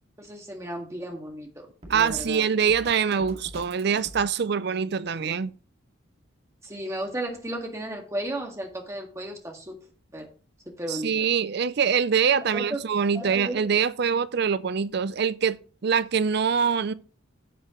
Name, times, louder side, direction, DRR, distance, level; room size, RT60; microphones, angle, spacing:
voice 1, 0.2-1.7 1.9-2.4 6.6-9.8 10.1-10.3 10.7-11.1 12.4-12.8 13.1-13.6, right 1 dB, 15° right, 1.8 m, -34 dB
Drum kit, 1.8-4.2, right 1 dB, 35° right, 2.2 m, -43 dB
voice 2, 1.9-5.5 10.9-16.9, right 6 dB, 55° right, 0.5 m, -24 dB
10.5 x 7.8 x 3.0 m
head